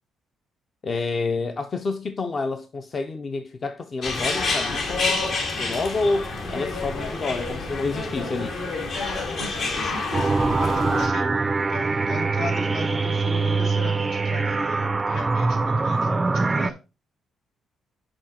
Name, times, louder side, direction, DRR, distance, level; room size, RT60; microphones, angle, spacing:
voice 1, 0.8-8.6 16.1-16.3, left 3 dB, 40° left, 0.6 m, -29 dB
sound 1, 4.0-11.1, left 3 dB, 65° left, 1.9 m, -28 dB
voice 2, 8.9-16.8, left 1 dB, 85° left, 2.7 m, -36 dB
sound 2, 10.1-16.7, right 3 dB, 25° right, 0.4 m, -23 dB
6.1 x 5.0 x 4.2 m
cardioid pair, 90°, 0 cm